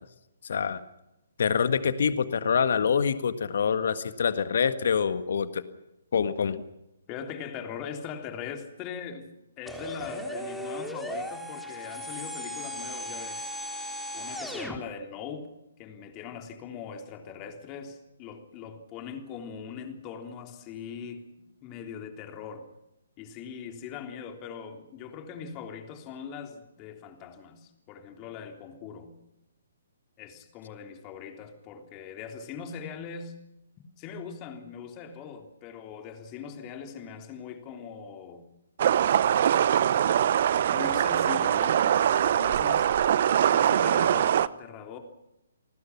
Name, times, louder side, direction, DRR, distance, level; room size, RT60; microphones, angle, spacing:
voice 1, 0.4-0.8 1.4-5.6 6.1-6.6, left 6 dB, 60° left, 12 dB, 1.7 m, -25 dB
voice 2, 7.1-9.3 9.6-13.5 14.1-15.5 15.8-21.3 21.6-22.7 23.2-29.1 30.2-33.4 34.0-38.5 39.2-40.0 40.7-42.9 43.5-45.0, left 7 dB, 25° left, 5 dB, 3.4 m, -41 dB
sound 1, 9.7-14.8, equal, ahead, 3.3 m, -36 dB
sound 2, 38.8-44.5, right 10 dB, 50° right, 0.8 m, -23 dB
29.5 x 20.0 x 6.0 m, 0.91 s
figure-of-eight pair, 135°, 0 cm